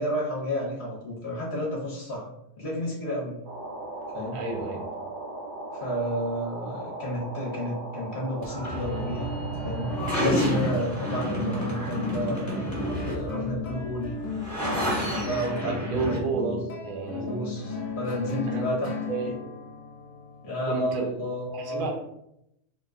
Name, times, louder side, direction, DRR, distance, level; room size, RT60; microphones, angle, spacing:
voice 1, 0.0-2.3 2.6-3.4 4.1-4.4 5.7-9.3 9.6-12.5 13.0-14.1 15.1-16.6 17.1-18.9 19.2-19.3 20.4-21.8, equal, 50° left, -5 dB, 1.0 m, -31 dB
sound 1, 3.4-10.3, right 2 dB, 65° right, 0.4 m, -38 dB
voice 2, 4.3-4.9 15.6-17.3 18.5-18.7 19.1-19.5 20.7-21.1 21.5-21.9, right 4 dB, 80° right, 0 dB, 1.2 m, -31 dB
sound 2, 8.4-16.2, equal, 25° left, 0.4 m, -31 dB
sound 3, 8.6-21.4, left 2 dB, 85° left, 1.1 m, -36 dB
2.8 x 2.2 x 3.5 m, 0.81 s
omnidirectional pair, 1.6 m